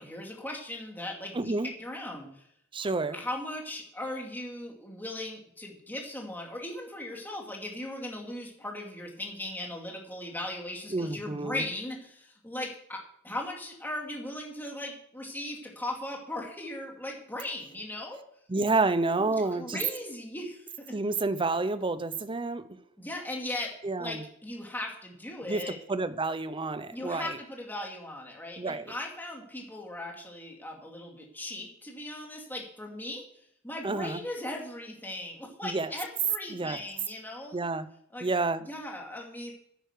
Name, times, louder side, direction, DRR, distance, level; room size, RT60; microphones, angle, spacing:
voice 1, 0.0-2.4 3.1-13.0 13.2-18.2 19.1-20.9 23.0-23.7 24.0-25.8 26.9-33.2 33.6-37.6 38.1-38.3 38.6-39.5, left 1 dB, 10° left, -1 dB, 2.5 m, -38 dB
voice 2, 1.3-1.7 2.7-3.2 10.9-11.6 18.5-19.8 20.9-22.6 23.8-24.2 25.5-25.6 25.9-27.4 28.6-28.9 33.8-34.2 35.6-35.9 36.5-36.8 37.5-37.9 38.2-38.6, right 3 dB, 25° right, 13 dB, 0.6 m, -29 dB
9.7 x 9.1 x 6.6 m, 0.70 s
head